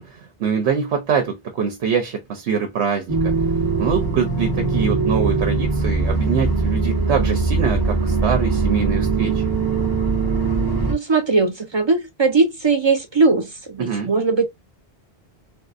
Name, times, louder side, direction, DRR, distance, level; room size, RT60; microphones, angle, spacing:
voice 1, 0.0-3.3 3.8-9.4 13.8-14.1, right 6 dB, 85° right, 1.0 m, -24 dB
sound 1, 3.1-10.9, right 4 dB, 20° right, 0.9 m, -21 dB
voice 2, 10.9-14.5, right 3 dB, 45° right, 0.3 m, -19 dB
3.5 x 2.1 x 2.4 m
omnidirectional pair, 1.1 m